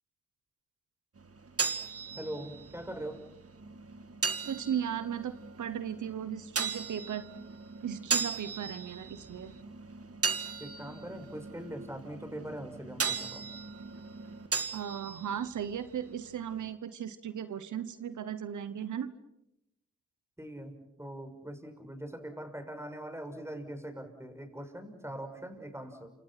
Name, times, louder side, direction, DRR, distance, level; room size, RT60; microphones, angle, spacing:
sound 1, 1.2-16.7, right 5 dB, 50° right, 2.0 m, -38 dB
voice 1, 2.2-3.2 10.6-13.4 20.4-26.1, right 1 dB, 10° right, 6 dB, 6.5 m, -42 dB
voice 2, 4.4-7.2 7.8-9.5 14.7-19.1, right 9 dB, 90° right, 13 dB, 1.0 m, -36 dB
29.0 x 27.0 x 5.9 m, 0.86 s
cardioid pair, 45°, 29 cm